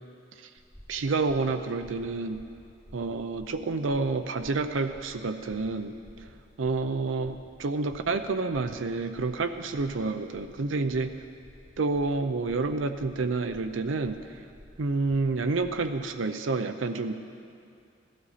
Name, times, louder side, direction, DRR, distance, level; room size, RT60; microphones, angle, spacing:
sound 1, 0.6-16.0, equal, 5° left, 1.4 m, -53 dB
voice 1, 0.9-2.4 2.9-5.9 6.6-11.1 11.8-14.4 14.8-17.1, right 3 dB, 80° right, 7 dB, 0.6 m, -29 dB
17.0 x 12.5 x 4.1 m, 2.4 s
head